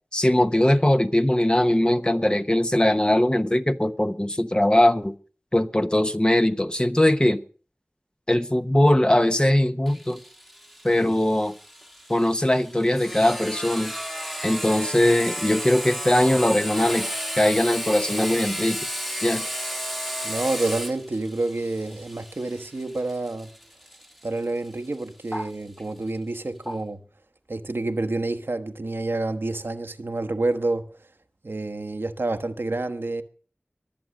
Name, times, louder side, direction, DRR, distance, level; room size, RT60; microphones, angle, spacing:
voice 1, 0.1-5.1 5.5-7.4 8.3-10.2 10.8-11.5 12.1-13.9 14.4-17.1 17.4-18.8 19.2-19.4 25.3-25.4 26.7-26.8, left 1 dB, 25° left, 1.0 m, -21 dB
Sawing, 9.9-25.3, equal, 5° left, 1.4 m, -33 dB
voice 2, 20.2-23.5 24.2-27.0 27.5-30.9 31.4-33.2, right 2 dB, 75° right, 1.1 m, -28 dB
22.5 x 7.8 x 6.3 m
wide cardioid pair, 40°, 4 cm